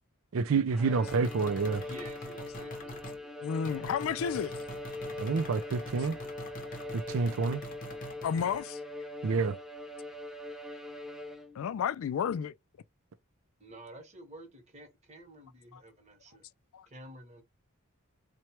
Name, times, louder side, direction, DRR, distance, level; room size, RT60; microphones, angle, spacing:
voice 1, 0.3-1.8 5.2-6.2 6.9-7.6 9.2-9.6, right 4 dB, 65° right, 0.4 m, -28 dB
Bowed string instrument, 0.7-11.7, left 1 dB, ahead, 0.4 m, -42 dB
sound 1, 1.1-3.2 3.6-8.6, left 1 dB, 40° left, 0.7 m, -45 dB
voice 2, 1.8-3.5 13.6-16.4 16.9-17.4, right 1 dB, 30° right, 1.2 m, -50 dB
voice 3, 3.4-4.5 8.2-8.8 11.6-12.5 15.7-15.8 16.7-16.9, left 7 dB, 65° left, 0.3 m, -31 dB
4.4 x 2.2 x 2.9 m
head